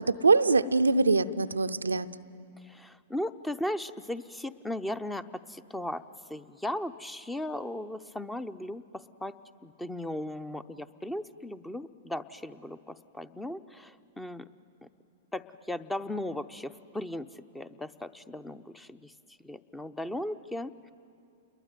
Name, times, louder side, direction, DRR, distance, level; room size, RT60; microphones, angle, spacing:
voice 1, 0.0-2.1, right 3 dB, 90° right, 10 dB, 0.6 m, -23 dB
voice 2, 2.6-9.4 9.6-14.5 15.3-17.3 17.5-19.1 19.4-20.9, left 1 dB, 5° left, 13 dB, 0.8 m, -37 dB
28.5 x 22.0 x 9.2 m, 2.6 s
hypercardioid pair, 110°, 0 cm